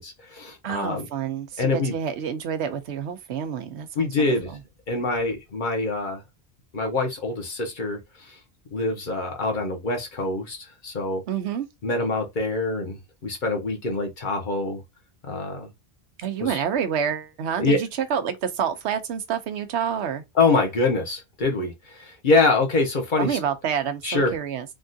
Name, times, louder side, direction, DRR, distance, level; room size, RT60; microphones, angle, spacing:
voice 1, 0.0-1.1 1.6-1.9 3.9-4.5 4.9-6.2 6.7-8.4 8.7-11.2 11.8-14.8 15.2-15.7 16.4-16.6 17.6-17.8 20.3-23.4 24.0-24.4, left 3 dB, 50° left, 0.9 m, -25 dB
voice 2, 0.6-4.3 11.3-11.7 16.2-20.2 23.2-24.6, right 8 dB, 80° right, 0.9 m, -28 dB
3.5 x 2.3 x 2.6 m
omnidirectional pair, 1.1 m